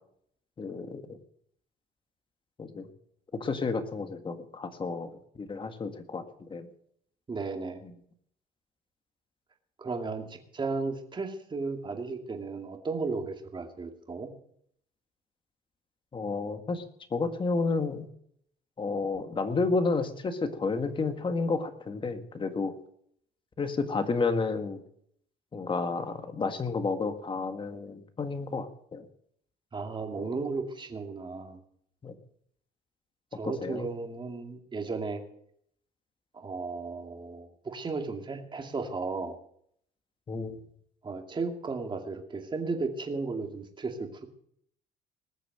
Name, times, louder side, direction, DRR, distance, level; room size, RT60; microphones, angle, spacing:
voice 1, 0.6-1.2 2.6-2.9 3.3-5.1 5.4-6.7 7.8-7.9 16.1-16.8 17.1-18.1 18.8-22.7 23.6-24.8 25.5-29.1 30.2-30.3 32.0-32.1 33.3-33.9 40.3-40.6, left 4 dB, 30° left, 8 dB, 1.8 m, -31 dB
voice 2, 7.3-7.8 9.8-14.3 29.7-31.6 33.3-35.2 36.3-39.4 41.0-44.3, right 4 dB, 25° right, 4 dB, 2.4 m, -35 dB
20.0 x 6.8 x 7.9 m, 0.68 s
cardioid pair, 110°, 17 cm